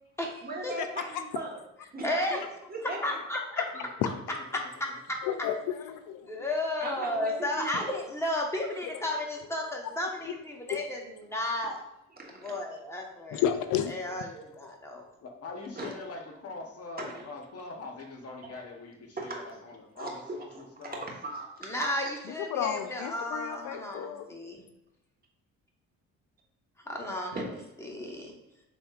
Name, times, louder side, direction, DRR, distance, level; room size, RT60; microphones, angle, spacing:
voice 1, 0.4-1.6 1.9-2.4 2.7-3.2 6.8-7.9 12.1-12.5 15.8-15.9 17.0-17.3 19.2-19.5 20.0-20.6 20.9-21.7 27.3-27.5, right 2 dB, 30° right, -2 dB, 1.3 m, -38 dB
voice 2, 2.0-2.4 3.0-3.8 4.5-4.6 5.1-5.2 6.2-11.8 12.4-13.4 13.9-15.0 21.6-24.6 26.9-27.4 27.8-28.3, left 1 dB, 10° left, 0 dB, 1.0 m, -33 dB
voice 3, 3.7-4.7 14.1-14.2 14.9-21.0, left 3 dB, 50° left, 2 dB, 1.0 m, -44 dB
voice 4, 5.2-6.3 10.2-10.4 10.7-10.8 13.3-13.9 14.6-14.7 22.3-24.3, left 9 dB, 85° left, 8 dB, 0.5 m, -31 dB
6.1 x 3.5 x 2.4 m, 0.87 s
cardioid pair, 90°, 30 cm